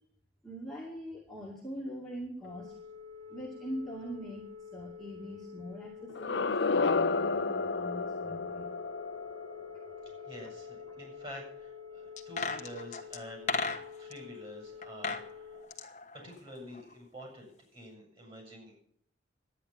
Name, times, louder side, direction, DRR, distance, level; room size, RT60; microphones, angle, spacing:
voice 1, 0.4-2.7 3.3-4.4 4.7-8.7 10.9-11.0, equal, ahead, -6 dB, 2.2 m, -42 dB
Telephone, 2.4-15.6, left 6 dB, 80° right, 3.2 m, -48 dB
sound 1, 6.1-11.0, left 4 dB, 65° left, 0.6 m, -32 dB
voice 2, 10.3-13.7 14.0-15.6 16.2-18.8, equal, 30° right, 1 dB, 7.5 m, -48 dB
sound 2, 12.2-14.2 14.8-15.3 15.6-16.9 17.2-17.3, left 4 dB, 35° left, 1.2 m, -35 dB
11.5 x 9.9 x 8.7 m, 0.65 s
head